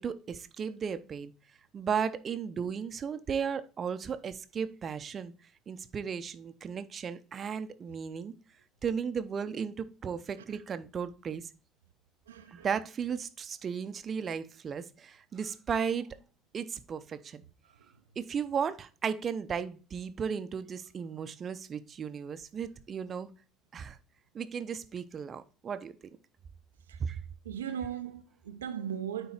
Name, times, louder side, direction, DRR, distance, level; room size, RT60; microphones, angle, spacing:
voice 1, 0.0-1.3 1.7-5.3 5.7-8.3 8.8-11.5 12.5-16.2 16.5-17.4 18.2-23.3 23.7-24.0 24.3-26.0 27.0-27.2, right 7 dB, 40° right, 0.7 m, -35 dB
voice 2, 12.3-12.7 17.6-17.9 26.9-27.0 27.4-29.3, right 9 dB, 85° right, 0.5 m, -38 dB
9.3 x 3.8 x 4.4 m
hypercardioid pair, 60°, 0 cm